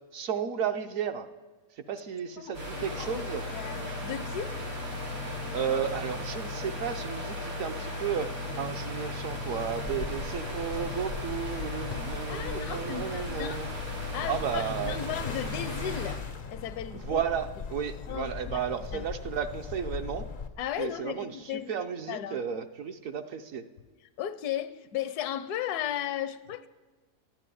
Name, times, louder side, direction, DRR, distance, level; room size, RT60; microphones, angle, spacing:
voice 1, 0.1-1.3 1.9-3.4 5.5-13.7 14.3-15.0 17.0-20.3 20.8-23.6, right 8 dB, 65° right, 1.0 m, -33 dB
voice 2, 2.4-3.3 3.5-4.6 12.3-13.7 14.1-17.2 18.1-19.1 20.6-21.7 22.1-22.4 24.2-26.7, left 10 dB, 75° left, 1.1 m, -36 dB
sound 1, 2.5-16.1, left 2 dB, 85° right, 6.6 m, -36 dB
sound 2, 9.3-20.5, left 6 dB, 60° left, 0.5 m, -40 dB
12.5 x 10.0 x 9.9 m
omnidirectional pair, 1.7 m